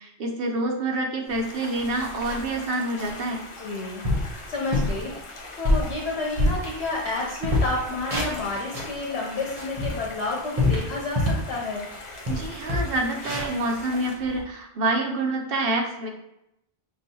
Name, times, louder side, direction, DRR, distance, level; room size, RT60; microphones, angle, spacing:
voice 1, 0.0-3.4 12.3-16.1, right 2 dB, 65° right, 2 dB, 0.9 m, -27 dB
sound 1, 1.3-14.1, left 2 dB, 40° left, 0.5 m, -42 dB
sound 2, 1.3-1.4 1.8-2.6 3.0-3.2 3.7-3.8 4.0-4.3 4.7-5.0 5.4-7.1 7.4-9.0 9.4-11.5 11.9-12.0 12.2-14.4, left 2 dB, 35° right, 1.0 m, -26 dB
voice 2, 3.6-4.1 4.5-5.1 5.6-11.8, left 2 dB, 85° left, -3 dB, 1.1 m, -30 dB
6.0 x 2.7 x 2.7 m, 0.81 s
omnidirectional pair, 1.1 m